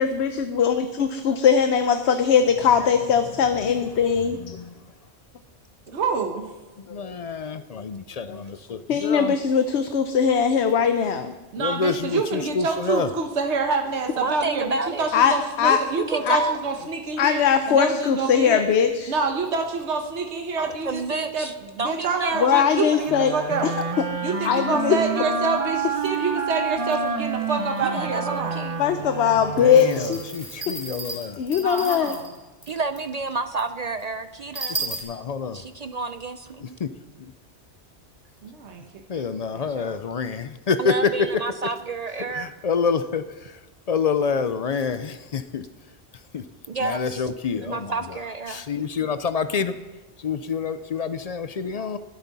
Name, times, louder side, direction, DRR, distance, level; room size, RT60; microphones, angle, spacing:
voice 1, 0.0-4.4 6.9-7.1 8.3-8.4 8.7-11.3 15.1-15.8 16.3-16.4 17.2-19.1 22.4-23.3 23.6-23.7 24.4-25.0 28.8-30.2 31.4-32.2, left 7 dB, 75° left, 8 dB, 1.0 m, -20 dB
voice 2, 4.2-4.9 6.8-9.4 11.6-13.1 29.4-31.4 34.6-35.7 36.6-36.9 37.2-37.3 39.1-41.4 42.2-43.6 43.9-45.7 46.3-46.4 46.8-48.2 48.5-49.7 50.2-52.0, left 5 dB, 50° left, 11 dB, 0.5 m, -27 dB
voice 3, 5.9-6.5 11.5-17.4 17.7-18.7 19.1-23.7 24.2-28.7 31.6-32.3 38.4-38.8 39.1-40.0, right 4 dB, 80° right, 4 dB, 1.3 m, -27 dB
voice 4, 14.2-15.1 15.6-16.6 20.6-21.5 21.8-23.0 27.8-28.9 32.7-34.8 35.5-36.8 40.8-42.5 46.7-47.3 47.5-48.6, right 3 dB, 50° right, 10 dB, 0.5 m, -30 dB
sound 1, 23.1-30.5, right 5 dB, 35° right, 0.9 m, -29 dB
sound 2, 29.7-32.4 32.6-32.7 33.0-33.1 33.6-33.7 34.0-34.1 34.5-35.0, right 3 dB, 15° right, 2.5 m, -33 dB
21.0 x 8.2 x 4.1 m, 1.2 s
omnidirectional pair, 1.2 m